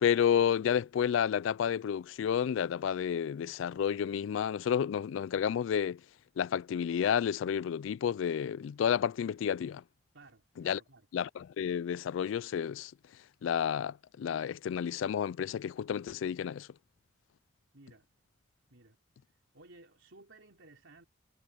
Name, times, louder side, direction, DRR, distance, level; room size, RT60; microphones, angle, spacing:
voice 1, 0.0-6.0 6.4-9.8 10.6-10.8 11.1-12.9 13.4-16.7, left 8 dB, 80° left, 0.3 m, -30 dB
voice 2, 10.1-11.1 17.7-18.1 18.7-19.0 19.5-21.0, right 2 dB, 75° right, 3.5 m, -57 dB
head